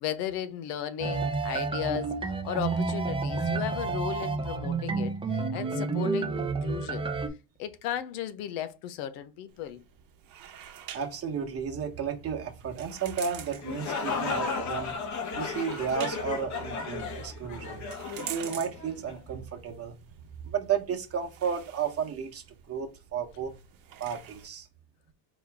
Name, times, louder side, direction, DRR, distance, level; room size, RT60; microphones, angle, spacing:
voice 1, 0.0-7.1 7.6-9.8, left 10 dB, 85° left, 0.8 m, -35 dB
sound 1, 1.0-7.3, right 4 dB, 15° right, 0.6 m, -30 dB
sound 2, 9.5-24.5, right 10 dB, 55° right, 1.0 m, -48 dB
voice 2, 10.9-14.9 15.3-17.8 18.2-20.0 20.4-23.5 24.0-24.7, right 7 dB, 35° right, 1.1 m, -33 dB
sound 3, 13.5-19.2, left 4 dB, 45° left, 1.2 m, -34 dB
3.9 x 3.0 x 3.5 m
cardioid pair, 115°, 41 cm